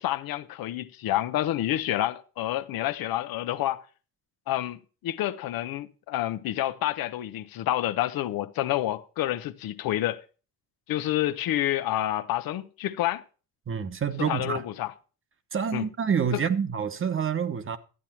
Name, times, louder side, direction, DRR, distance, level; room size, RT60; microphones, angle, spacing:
voice 1, 0.0-3.8 4.5-10.2 10.9-13.2 14.2-14.9 15.7-15.8 16.3-16.4, left 13 dB, 80° left, 0.9 m, -28 dB
voice 2, 13.7-14.6 15.5-17.8, right 7 dB, 35° right, 1.1 m, -27 dB
12.5 x 8.6 x 4.4 m
cardioid pair, 110°, 35 cm